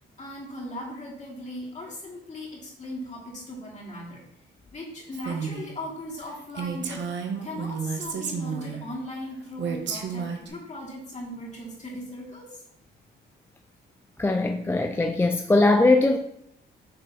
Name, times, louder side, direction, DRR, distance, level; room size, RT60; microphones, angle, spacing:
voice 1, 0.2-4.2 4.7-7.0 7.4-12.6, left 1 dB, 35° left, -4 dB, 2.6 m, -38 dB
Female speech woman speaking, 5.1-5.7 6.1-6.2 6.5-8.8 9.6-10.5, right 6 dB, 65° right, 1.0 m, -31 dB
voice 2, 14.2-16.2, left 2 dB, 10° left, 5 dB, 0.4 m, -20 dB
6.9 x 3.6 x 4.2 m, 0.77 s
cardioid pair, 90°, 20 cm